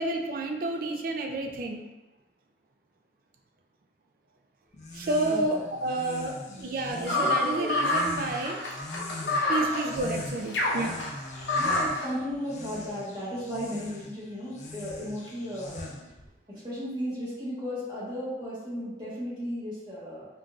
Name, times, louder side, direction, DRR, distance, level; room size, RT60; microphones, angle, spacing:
voice 1, 0.0-1.8 4.9-8.6 9.0-11.0, right 2 dB, 50° right, 3 dB, 0.4 m, -30 dB
sound 1, 4.7-16.3, left 2 dB, 40° left, 0.4 m, -42 dB
voice 2, 5.2-5.7 6.5-6.7 7.1-7.3 7.6-7.7 11.6-15.9 16.5-20.3, equal, 25° right, -8 dB, 1.1 m, -35 dB
sound 2, 7.1-12.1, left 2 dB, 85° left, 0.6 m, -28 dB
sound 3, 7.1-8.1 9.4-10.7 11.2-11.6 11.8-12.7 13.4-13.5, left 1 dB, 90° right, 0.7 m, -46 dB
3.7 x 2.5 x 2.3 m, 1.1 s
head